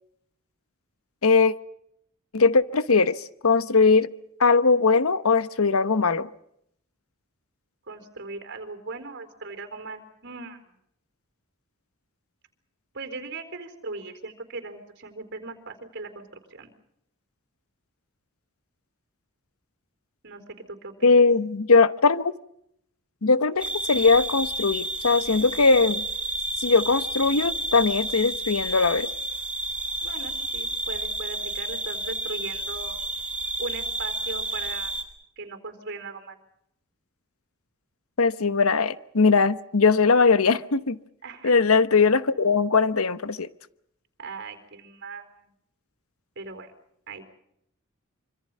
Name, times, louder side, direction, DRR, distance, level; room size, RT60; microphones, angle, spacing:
voice 1, 1.2-1.5 2.3-4.1 4.4-6.3 21.0-22.3 23.2-26.0 26.6-29.1 38.2-41.0 41.4-43.5, left 4 dB, 85° left, 1.1 m, -20 dB
voice 2, 7.9-10.6 12.9-16.2 16.5-16.7 20.2-20.4 20.7-21.2 30.0-32.9 33.6-34.9 35.4-36.4 41.2-41.5 44.2-45.3 46.4-46.7 47.1-47.2, right 3 dB, 55° right, 4.3 m, -38 dB
sound 1, 23.6-35.0, right 1 dB, 5° right, 3.5 m, -31 dB
26.0 x 25.5 x 5.6 m
head